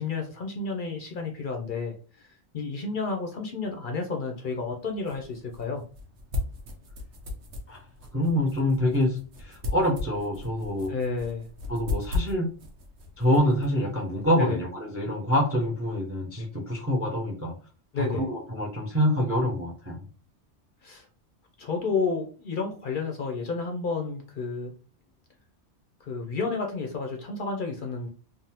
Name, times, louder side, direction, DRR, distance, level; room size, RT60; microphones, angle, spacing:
voice 1, 0.0-5.8 10.9-11.5 14.3-14.6 17.9-18.2 20.8-21.1 21.6-24.7 26.1-28.1, left 4 dB, 55° left, 2 dB, 0.6 m, -31 dB
sound 1, 4.5-14.5, left 3 dB, 70° right, 1.0 m, -37 dB
voice 2, 8.1-10.9 11.7-12.5 13.2-17.5 18.0-20.0, left 1 dB, 20° right, -1 dB, 0.4 m, -26 dB
3.4 x 2.1 x 2.8 m, 0.38 s
omnidirectional pair, 1.2 m